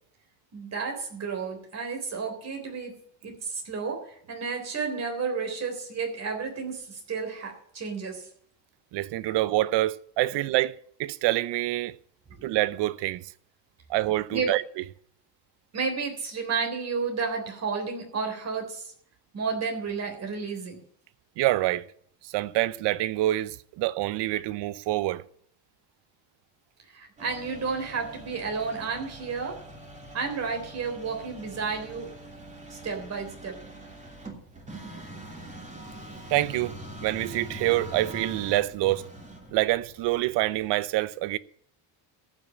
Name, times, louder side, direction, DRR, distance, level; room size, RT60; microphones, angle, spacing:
voice 1, 0.5-8.3 12.3-12.5 14.3-14.5 15.7-18.9 19.3-20.8 26.9-29.6 30.1-32.1 32.7-33.6, right 5 dB, 30° right, 3.7 m, -32 dB
voice 2, 8.9-10.7 11.0-12.0 12.4-13.2 13.9-14.6 21.4-21.9 22.2-25.2 36.3-39.1 39.5-41.4, right 16 dB, 60° right, 0.7 m, -26 dB
sound 1, 27.2-40.7, right 1 dB, 15° right, 3.1 m, -43 dB
15.0 x 6.3 x 8.5 m
cardioid pair, 135°, 48 cm